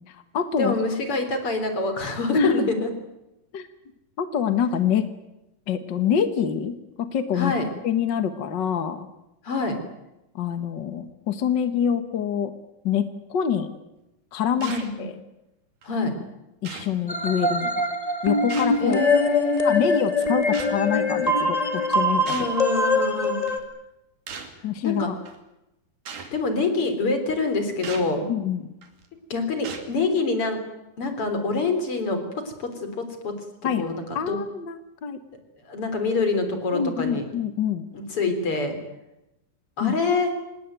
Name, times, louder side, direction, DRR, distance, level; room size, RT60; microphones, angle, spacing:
voice 1, 0.1-0.7 2.3-2.7 3.5-3.7 4.2-5.1 5.7-7.5 7.8-9.1 10.3-12.5 12.8-13.7 14.3-14.7 15.0-15.1 16.6-17.9 18.2-19.1 19.6-22.3 24.6-25.2 28.3-28.7 33.6-33.9 34.1-35.2 36.7-37.8 39.8-39.9, left 8 dB, 55° left, 10 dB, 1.2 m, -26 dB
voice 2, 0.6-2.9 7.3-7.7 9.4-9.8 14.6-14.9 15.8-16.1 18.8-19.9 22.3-23.5 24.8-25.1 26.3-28.3 29.3-30.6 31.0-32.2 32.6-33.3 33.7-33.9 34.3-34.4 35.7-37.2 37.9-38.8 39.8-40.3, left 3 dB, 40° left, 7 dB, 4.6 m, -25 dB
sound 1, 14.6-15.0 15.8-15.9 16.6-17.0 18.5-18.9 20.5-20.8 22.3-22.6 23.5-23.6 24.3-24.6 25.3-25.4 26.1-26.3 27.8-28.1 28.8-29.1 29.6-29.9, right 6 dB, 65° right, 4.1 m, -38 dB
sound 2, 17.1-23.6, left 2 dB, 15° left, 1.7 m, -23 dB
26.0 x 20.0 x 9.2 m, 0.93 s
omnidirectional pair, 4.0 m